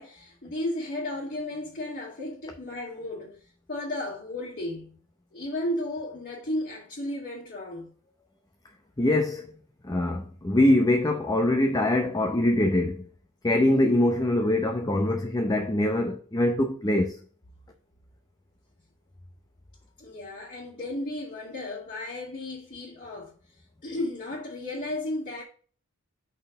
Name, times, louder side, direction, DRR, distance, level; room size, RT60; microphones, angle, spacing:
voice 1, 0.0-5.0 5.3-7.9 20.0-23.3 23.8-25.4, left 1 dB, 40° left, 2.4 m, -34 dB
voice 2, 9.0-9.5 9.8-13.1 13.4-17.2, left 1 dB, 15° left, 0.7 m, -23 dB
5.8 x 4.4 x 6.4 m
head